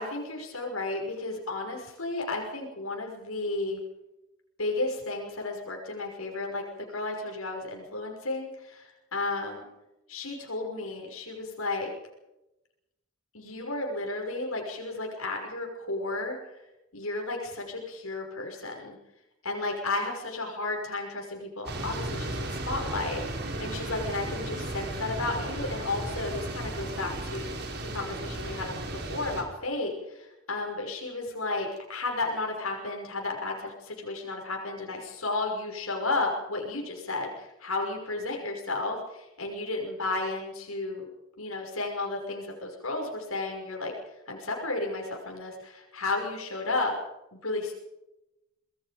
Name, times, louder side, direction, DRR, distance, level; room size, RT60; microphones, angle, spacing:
voice 1, 0.0-3.8 4.6-6.6 6.9-9.6 10.1-11.9 13.3-16.4 16.9-19.0 19.4-41.1 41.4-43.9 44.3-47.0 47.3-47.7, left 2 dB, 85° left, 1 dB, 5.9 m, -33 dB
sound 1, 21.7-29.4, right 1 dB, 50° right, 5.3 m, -35 dB
25.5 x 21.0 x 5.2 m, 0.92 s
head